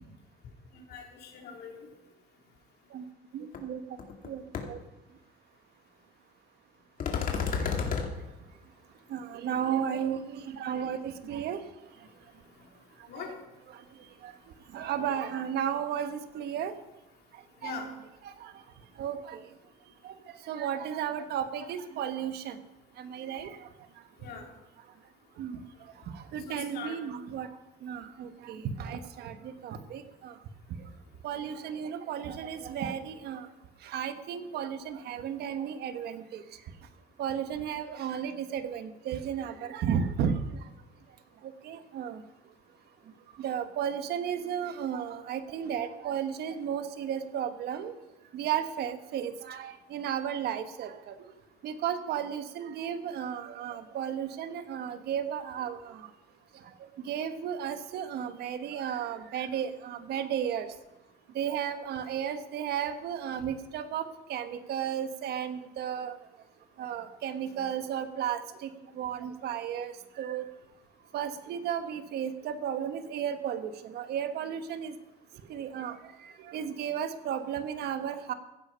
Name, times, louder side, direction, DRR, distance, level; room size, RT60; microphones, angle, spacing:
voice 1, 0.7-1.9 7.2-7.9 12.6-12.7 13.1-13.3 17.6-17.9 24.2-24.5 26.5-27.0, left 4 dB, 70° left, 1 dB, 3.2 m, -42 dB
voice 2, 3.3-3.8 4.2-4.4 4.7-4.8 9.1-11.6 13.2-13.3 14.2-14.3 14.7-16.7 17.6-17.7 18.4-18.5 19.0-19.4 20.0-20.1 20.5-22.6 23.0-23.6 25.4-25.6 26.1-27.5 27.8-29.4 29.6-30.3 31.2-33.5 33.8-36.4 37.2-40.3 41.6-42.2 43.4-47.9 48.3-51.1 51.6-56.0 57.1-60.7 61.3-66.1 66.8-68.7 69.0-70.4 71.1-74.9 75.5-76.0 76.2-78.3, right 8 dB, 70° right, 10 dB, 1.2 m, -34 dB
sound 1, 3.5-3.6 4.0-4.3 4.5-4.6 7.0-8.1, left 6 dB, 55° left, 2.2 m, -30 dB
15.5 x 10.0 x 5.6 m, 1.0 s
cardioid pair, 110°, 17 cm